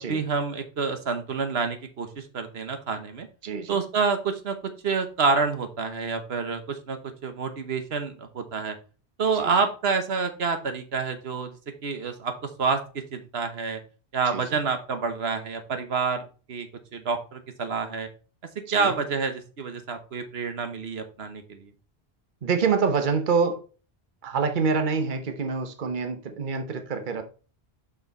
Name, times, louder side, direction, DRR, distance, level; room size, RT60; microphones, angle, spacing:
voice 1, 0.0-3.3 3.7-4.6 4.8-8.7 9.2-11.5 11.8-12.8 13.1-13.8 14.1-18.1 18.7-21.7, right 5 dB, 75° right, 1.3 m, -28 dB
voice 2, 3.4-3.8 9.4-9.5 14.3-14.6 18.7-18.9 22.4-23.6 24.2-27.2, right 5 dB, 50° right, 1.1 m, -26 dB
6.8 x 5.8 x 4.0 m
omnidirectional pair, 1.1 m